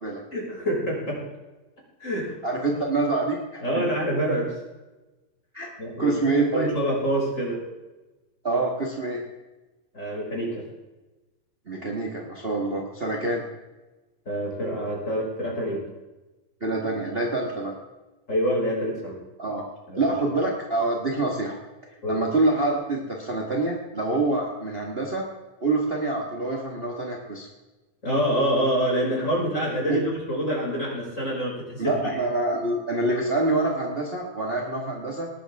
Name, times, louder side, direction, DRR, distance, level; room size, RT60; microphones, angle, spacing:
voice 1, 0.3-1.2 2.0-2.3 3.6-4.5 5.8-7.6 9.9-10.6 14.3-15.8 18.3-19.2 19.9-20.0 22.0-22.2 28.0-32.2, equal, 20° left, -4 dB, 5.8 m, -26 dB
voice 2, 2.4-3.9 5.5-5.7 6.0-6.7 8.4-9.2 11.7-13.4 16.6-17.7 19.4-19.6 20.0-21.6 22.1-25.3 25.6-27.5 29.9-30.0 31.8-35.3, right 2 dB, 35° right, -1 dB, 0.9 m, -26 dB
19.5 x 12.0 x 3.6 m, 1.1 s
omnidirectional pair, 4.1 m